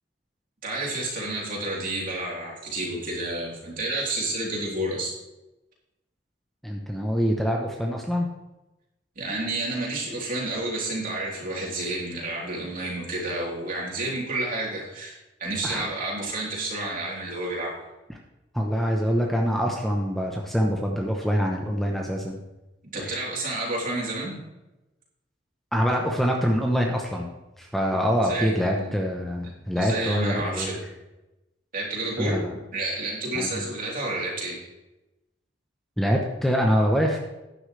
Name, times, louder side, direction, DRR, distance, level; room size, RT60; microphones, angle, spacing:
voice 1, 0.6-5.1 9.2-17.8 22.8-24.4 28.2-28.9 29.7-30.8 31.7-32.4 32.7-34.6, right 2 dB, 50° right, -4 dB, 3.5 m, -30 dB
voice 2, 6.6-8.3 15.6-15.9 18.5-22.4 23.0-23.2 25.7-27.3 27.6-30.7 32.2-32.6 33.3-33.7 36.0-37.2, equal, ahead, 0 dB, 0.9 m, -25 dB
12.0 x 10.0 x 3.3 m, 1.0 s
head